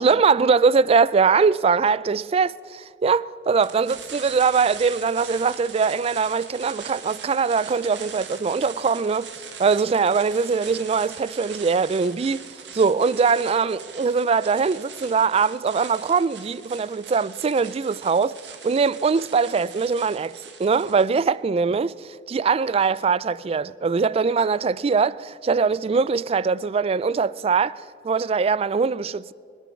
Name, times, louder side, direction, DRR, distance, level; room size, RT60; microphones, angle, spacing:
voice 1, 0.0-9.3 9.6-12.4 12.7-18.4 18.6-29.3, right 5 dB, 35° right, 0.3 m, -22 dB
sound 1, 3.6-21.3, right 6 dB, 90° right, 1.6 m, -41 dB
22.0 x 9.8 x 6.4 m
head